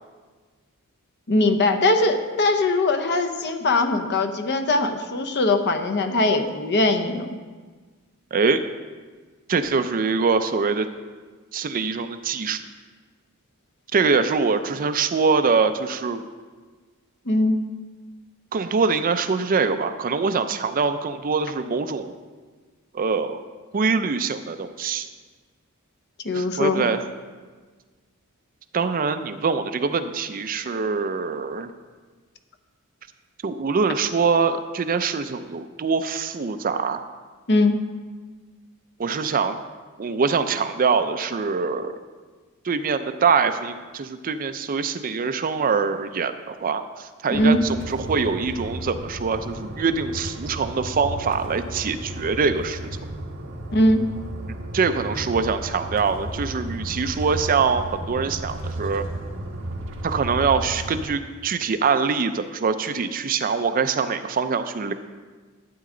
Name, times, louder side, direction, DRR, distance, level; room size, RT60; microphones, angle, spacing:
voice 1, 1.3-7.3 17.3-17.6 26.2-26.8 37.5-37.8 47.3-47.6 53.7-54.2, left 2 dB, 50° left, 6 dB, 0.8 m, -21 dB
voice 2, 8.3-8.6 9.5-10.9 11.5-12.6 13.9-16.2 18.5-22.1 22.9-23.4 23.7-25.1 26.3-27.0 28.7-31.7 33.4-37.0 39.0-39.6 40.0-41.9 42.6-52.9 54.7-59.0 60.0-64.9, right 5 dB, 40° right, 10 dB, 0.4 m, -24 dB
sound 1, 47.3-61.1, right 1 dB, 60° right, 1.2 m, -34 dB
12.5 x 8.5 x 3.8 m, 1.4 s
head